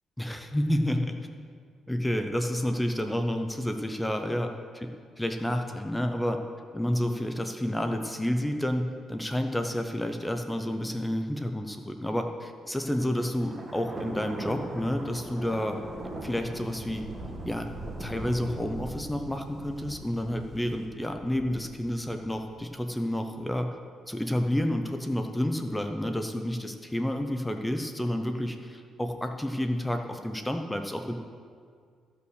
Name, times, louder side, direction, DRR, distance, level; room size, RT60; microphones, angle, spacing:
voice 1, 0.2-1.2 1.9-4.5 5.2-6.4 6.7-15.8 16.2-17.1 17.4-17.7 18.0-23.7 24.1-31.1, left 1 dB, 10° left, 5 dB, 0.8 m, -30 dB
Thunder, 12.9-22.7, right 1 dB, 20° right, 1.9 m, -40 dB
14.5 x 5.7 x 6.5 m, 2.1 s
cardioid pair, 90°, 0 cm